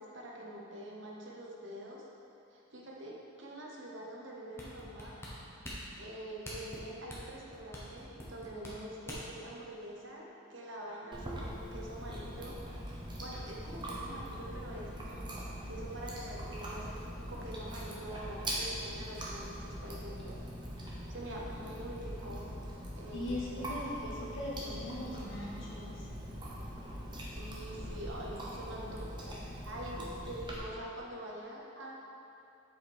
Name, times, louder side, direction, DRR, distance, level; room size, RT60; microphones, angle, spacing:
voice 1, 0.0-2.0 2.5-5.2 6.0-12.6 13.2-15.3 15.7-20.4 21.1-22.5 23.0-23.6 27.2-31.9, right 1 dB, 60° right, -3 dB, 1.2 m, -45 dB
sound 1, 4.6-9.4 9.9-10.0, equal, 10° left, 1.0 m, -45 dB
Chewing mastication, 11.1-30.6, equal, 20° right, 0.9 m, -42 dB
voice 2, 23.1-26.1, left 1 dB, 60° left, -5 dB, 1.5 m, -40 dB
7.7 x 5.0 x 4.4 m, 2.7 s
head